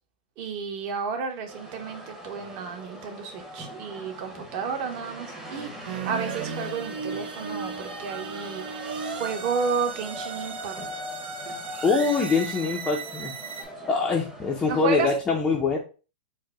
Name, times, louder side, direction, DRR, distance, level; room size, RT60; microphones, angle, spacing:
voice 1, 0.4-10.7 14.7-15.1, right 5 dB, 35° right, 4 dB, 0.9 m, -32 dB
sound 1, 1.5-15.1, right 1 dB, 10° right, 0.9 m, -42 dB
sound 2, 5.8-13.6, right 4 dB, 75° right, 1.0 m, -36 dB
voice 2, 11.8-13.3 13.8-15.8, left 4 dB, 15° left, -1 dB, 0.5 m, -24 dB
4.6 x 2.1 x 4.5 m, 0.34 s
hypercardioid pair, 155°, 5 cm